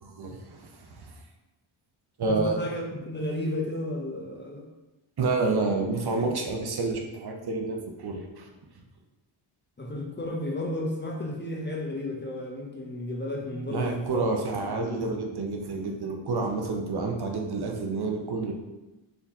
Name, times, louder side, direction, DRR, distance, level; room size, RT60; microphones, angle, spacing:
voice 1, 0.0-1.1 2.2-2.6 5.2-8.5 13.7-18.5, right 3 dB, 55° right, 2 dB, 0.7 m, -29 dB
voice 2, 2.3-4.6 9.8-14.2 14.6-15.2, left 1 dB, 25° left, -1 dB, 0.6 m, -33 dB
4.4 x 2.8 x 3.5 m, 1.0 s
wide cardioid pair, 130°, 48 cm